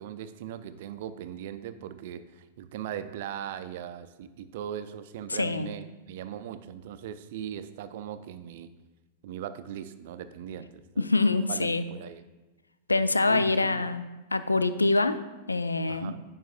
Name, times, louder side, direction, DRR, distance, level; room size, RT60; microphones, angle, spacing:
voice 1, 0.0-8.7 9.2-11.1 11.5-12.2 13.3-13.8 15.9-16.2, right 10 dB, 60° right, 12 dB, 0.4 m, -39 dB
voice 2, 5.3-5.7 11.0-11.8 12.9-14.0 14.3-15.2 15.5-16.1, left 3 dB, 90° left, 12 dB, 0.4 m, -25 dB
9.2 x 5.4 x 2.6 m, 1.1 s
figure-of-eight pair, 95°, 0 cm